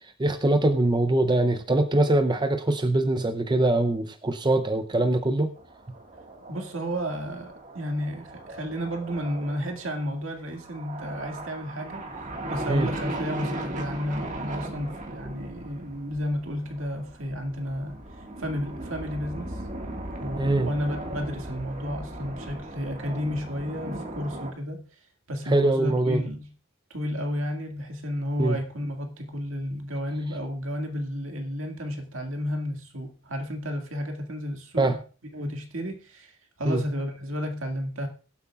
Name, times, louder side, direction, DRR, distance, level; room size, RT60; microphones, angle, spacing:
voice 1, 0.2-5.5 12.7-12.9 20.4-20.7 25.5-26.2 28.4-28.6 34.8-34.9 36.7-36.8, right 2 dB, 20° right, 0.6 m, -23 dB
sound 1, 5.6-24.5, right 1 dB, 40° right, 1.7 m, -38 dB
voice 2, 6.5-12.0 12.5-18.0 18.4-19.6 20.2-24.9 25.3-26.5 26.9-35.0 35.3-36.3 36.6-38.1, equal, 70° right, 2.0 m, -32 dB
23.0 x 7.9 x 2.4 m
head